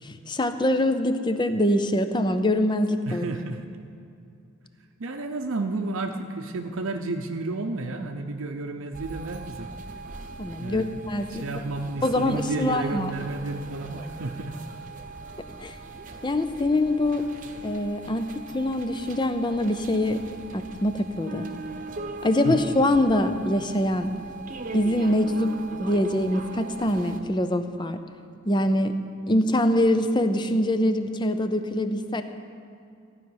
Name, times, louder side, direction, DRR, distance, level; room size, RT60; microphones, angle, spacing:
voice 1, 0.0-3.2 10.4-11.5 12.0-13.1 15.6-15.7 16.2-17.3 17.6-20.2 20.5-21.5 22.2-24.1 24.7-28.0 28.5-29.0 29.3-32.2, left 1 dB, 20° left, 9 dB, 0.6 m, -24 dB
voice 2, 3.1-3.7 5.0-9.7 10.6-11.0 11.3-14.6 22.4-22.6, right 2 dB, 70° right, 4 dB, 0.7 m, -31 dB
sound 1, 8.9-27.2, right 3 dB, 40° right, 1.0 m, -40 dB
15.0 x 5.7 x 9.4 m, 2.5 s
head